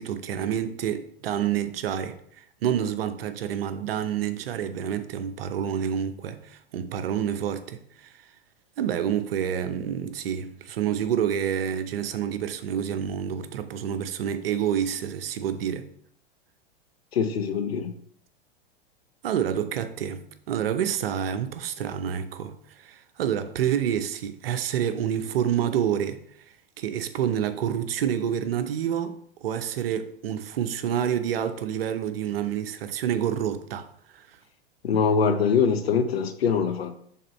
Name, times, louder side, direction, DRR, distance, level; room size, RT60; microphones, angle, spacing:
voice 1, 0.0-8.1 8.8-15.9 19.2-26.2 26.8-34.3, right 9 dB, 70° right, 0.7 m, -28 dB
voice 2, 17.1-17.9 34.8-37.0, left 6 dB, 85° left, 0.7 m, -23 dB
6.6 x 3.7 x 4.1 m
hypercardioid pair, 100°, 30 cm